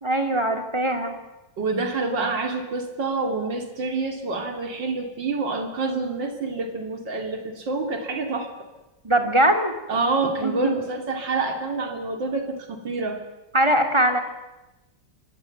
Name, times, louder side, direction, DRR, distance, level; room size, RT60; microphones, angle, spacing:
voice 1, 0.0-1.2 9.0-9.7 10.4-10.8 13.5-14.2, right 1 dB, 15° right, 6 dB, 2.6 m, -21 dB
voice 2, 1.6-8.5 9.9-13.2, right 3 dB, 75° right, 5 dB, 3.5 m, -27 dB
24.5 x 17.5 x 9.2 m, 0.99 s
omnidirectional pair, 2.0 m